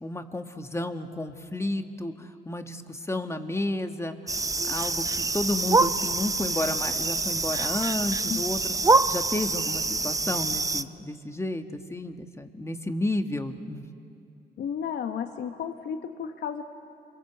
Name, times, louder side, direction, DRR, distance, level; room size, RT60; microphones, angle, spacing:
voice 1, 0.0-4.4 4.6-8.8 9.1-13.8, left 2 dB, 15° left, 6 dB, 1.6 m, -32 dB
sound 1, 4.3-10.8, right 3 dB, 20° right, 0.7 m, -26 dB
voice 2, 14.6-16.6, left 7 dB, 70° left, 6 dB, 1.1 m, -33 dB
28.5 x 22.0 x 8.2 m, 2.4 s
cardioid pair, 80°, 18 cm